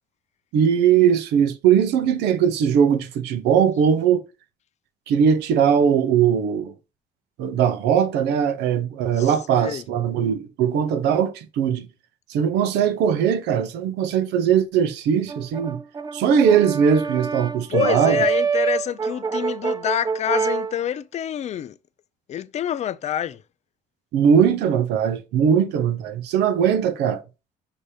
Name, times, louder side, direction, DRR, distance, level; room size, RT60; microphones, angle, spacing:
voice 1, 0.5-4.2 5.1-6.7 7.4-11.9 12.3-15.8 16.1-18.2 24.1-27.2, right 8 dB, 85° right, 0.8 m, -20 dB
voice 2, 9.2-9.8 17.7-21.8 22.3-23.4, left 10 dB, 40° left, 0.5 m, -27 dB
Brass instrument, 15.3-20.7, right 6 dB, 25° right, 0.4 m, -26 dB
6.6 x 2.9 x 4.9 m
cardioid pair, 110°, 17 cm